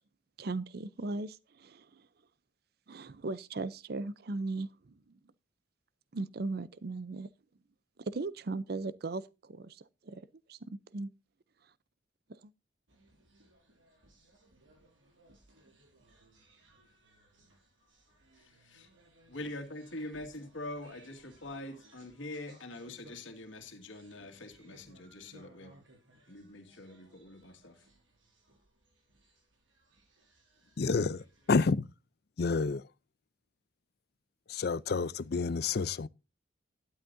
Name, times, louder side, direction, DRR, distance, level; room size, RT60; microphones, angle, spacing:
voice 1, 0.4-2.1 2.9-5.2 6.1-7.3 8.0-11.1 12.3-12.5, right 3 dB, 55° right, 0.6 m, -38 dB
sound 1, 12.9-31.7, right 1 dB, 90° right, 5.6 m, -63 dB
voice 2, 18.4-18.9 19.3-25.7 26.3-27.8, left 1 dB, 90° left, 1.9 m, -44 dB
voice 3, 30.8-31.9 32.4-32.8 34.5-36.1, left 4 dB, 55° left, 0.5 m, -29 dB
12.5 x 11.0 x 2.6 m
head